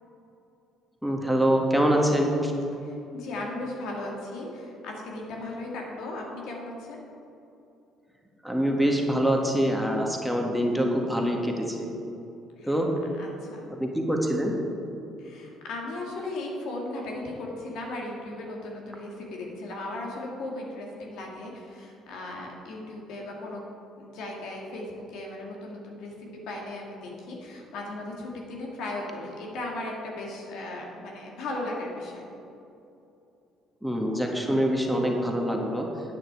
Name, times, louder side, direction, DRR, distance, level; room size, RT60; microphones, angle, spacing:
voice 1, 1.0-2.5 8.4-11.9 12.6-12.9 13.7-14.5 33.8-35.9, equal, ahead, 0 dB, 1.7 m, -25 dB
voice 2, 2.8-7.0 12.6-12.7 13.2-13.7 15.2-23.6 24.0-32.3, left 2 dB, 70° left, -1 dB, 2.0 m, -37 dB
9.6 x 9.1 x 4.8 m, 2.7 s
hypercardioid pair, 60°, 0 cm